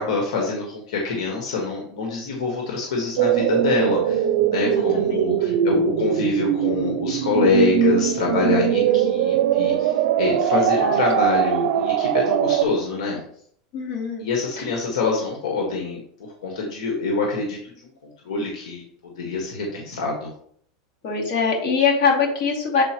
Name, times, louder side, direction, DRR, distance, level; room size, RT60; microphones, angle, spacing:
voice 1, 0.0-4.2 4.5-13.2 14.2-16.0 16.4-17.9 18.2-18.8 19.2-20.3, left 4 dB, 90° left, -1 dB, 1.5 m, -25 dB
sound 1, 3.2-12.6, right 10 dB, 70° right, 0.5 m, -21 dB
voice 2, 4.6-5.4 8.4-9.2 10.5-11.0 13.7-14.3 14.6-14.7 21.0-22.8, left 5 dB, 55° left, -3 dB, 2.6 m, -24 dB
7.5 x 4.3 x 3.0 m, 0.63 s
supercardioid pair, 145°, 3 cm